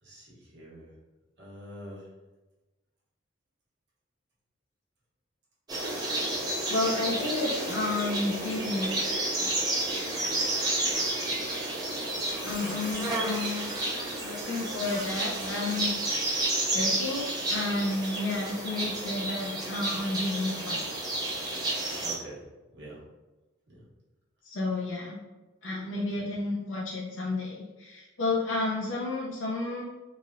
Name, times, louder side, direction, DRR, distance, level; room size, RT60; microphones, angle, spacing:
voice 1, 0.0-0.9 1.4-2.1 22.0-22.4 22.7-23.0 23.7-23.8 26.1-26.3, right 1 dB, 60° right, -6 dB, 1.1 m, -45 dB
sound 1, 5.7-22.2, right 2 dB, 20° right, 0.5 m, -31 dB
voice 2, 6.7-9.0 9.4-9.8 12.4-13.7 14.2-16.1 16.7-20.8 24.4-25.2 25.6-29.8, left 2 dB, 75° left, -3 dB, 0.5 m, -31 dB
Squeak, 11.8-17.8, left 2 dB, 40° left, 0.9 m, -50 dB
2.9 x 2.7 x 2.5 m, 1.1 s
head